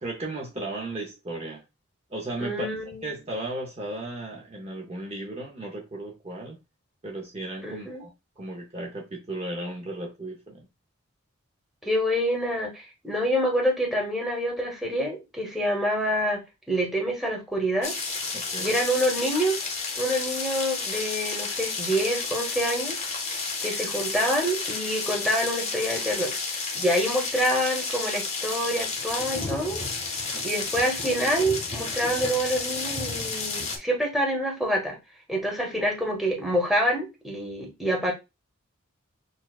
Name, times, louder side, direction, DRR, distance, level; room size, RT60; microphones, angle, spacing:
voice 1, 0.0-1.6 2.1-2.7 3.0-6.6 7.0-8.1 8.4-10.7 18.3-18.8 30.3-30.5, right 2 dB, 30° right, 0.7 m, -35 dB
voice 2, 2.4-3.1 7.6-8.0 11.8-16.4 16.7-17.9 18.6-19.6 19.9-23.0 23.6-29.8 30.4-35.0 35.3-38.1, equal, ahead, 1.0 m, -27 dB
sound 1, 17.8-33.8, left 4 dB, 30° left, 0.9 m, -31 dB
6.3 x 2.3 x 2.3 m
head